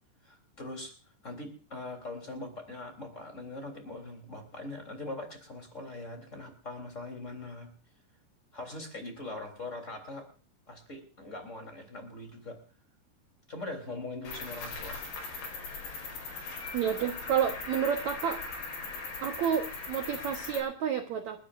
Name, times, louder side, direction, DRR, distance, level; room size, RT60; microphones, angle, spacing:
voice 1, 0.2-0.9 1.2-7.7 8.5-10.3 10.7-12.6 13.5-15.0, left 2 dB, 20° left, 4 dB, 3.3 m, -41 dB
Cricket, 14.2-20.6, left 4 dB, 70° left, 6.9 m, -39 dB
voice 2, 16.7-18.4 19.2-21.4, right 8 dB, 85° right, 4 dB, 1.6 m, -30 dB
29.5 x 12.5 x 2.6 m, 0.39 s
omnidirectional pair, 5.2 m